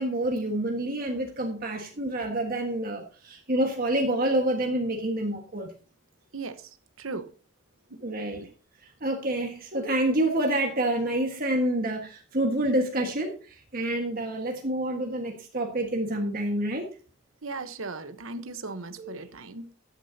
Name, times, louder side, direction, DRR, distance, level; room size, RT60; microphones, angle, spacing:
voice 1, 0.0-5.7 8.0-8.4 9.0-16.9 19.0-19.1, right 1 dB, 45° right, 1.6 m, -28 dB
voice 2, 6.3-6.7 7.0-7.3 7.9-8.0 8.4-8.5 17.4-19.7, right 3 dB, 70° right, 1.1 m, -37 dB
13.5 x 9.9 x 2.8 m
head